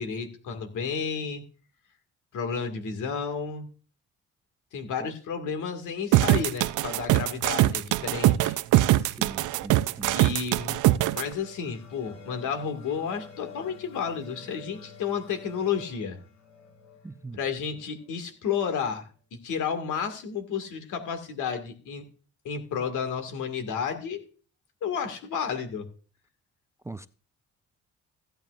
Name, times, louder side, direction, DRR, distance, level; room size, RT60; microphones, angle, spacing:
voice 1, 0.0-1.4 2.3-3.7 4.7-8.6 10.1-10.8 11.1-16.2 17.3-19.0 19.3-22.0 22.4-24.2 24.8-25.9, left 6 dB, 80° left, 2.2 m, -31 dB
sound 1, 6.1-11.2, right 15 dB, 85° right, 0.5 m, -22 dB
voice 2, 8.9-10.2 17.0-17.4 26.8-27.1, right 2 dB, 10° right, 0.4 m, -42 dB
sound 2, 11.0-18.3, left 5 dB, 65° left, 4.8 m, -49 dB
15.5 x 9.0 x 2.5 m
cardioid pair, 90°, 30 cm